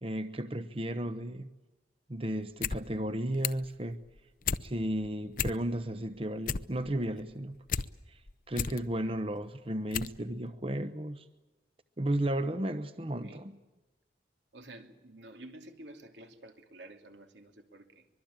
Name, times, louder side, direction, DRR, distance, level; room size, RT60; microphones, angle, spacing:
voice 1, 0.0-1.5 2.1-4.0 4.6-7.8 8.1-8.2 8.5-11.3 12.0-13.5, right 1 dB, 30° right, 0.9 m, -34 dB
sound 1, 2.4-2.8 3.1-3.7 4.1-4.6 5.0-5.1 5.3-5.9 6.2-7.9 8.3-8.8 9.4-9.5 9.9-10.2 10.5-10.6, left 6 dB, 50° left, 0.8 m, -33 dB
voice 2, 13.0-13.5 14.5-18.1, right 1 dB, 80° right, 2.9 m, -51 dB
24.5 x 22.5 x 8.8 m
head